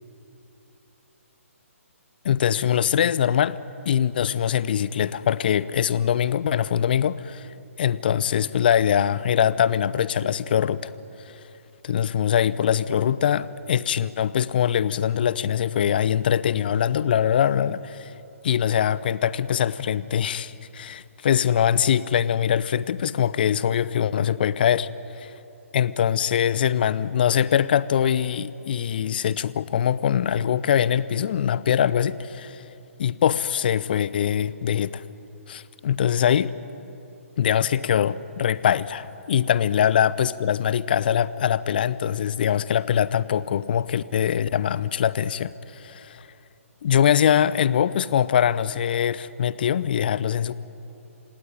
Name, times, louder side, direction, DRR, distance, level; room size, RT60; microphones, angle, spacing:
voice 1, 2.2-3.6 3.9-7.5 7.8-10.9 11.8-18.1 18.4-24.9 25.2-25.3 25.7-32.6 33.0-35.0 35.5-36.5 37.4-46.3 46.8-50.5, left 9 dB, 40° left, 18 dB, 0.7 m, -23 dB
26.5 x 17.5 x 9.9 m, 3.0 s
figure-of-eight pair, 135°, 8 cm